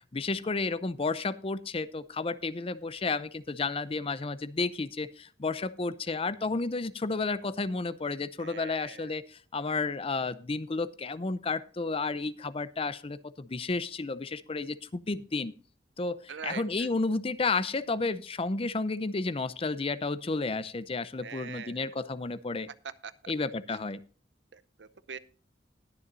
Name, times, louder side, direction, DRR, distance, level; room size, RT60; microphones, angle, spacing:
voice 1, 0.1-15.5 16.0-22.7 23.3-24.0, left 3 dB, 35° left, 16 dB, 0.6 m, -32 dB
voice 2, 8.4-9.1 16.3-16.9 21.2-21.8 23.0-23.3 23.7-23.8 24.5-25.2, right 6 dB, 85° right, 16 dB, 0.7 m, -43 dB
20.5 x 7.0 x 2.6 m, 0.40 s
head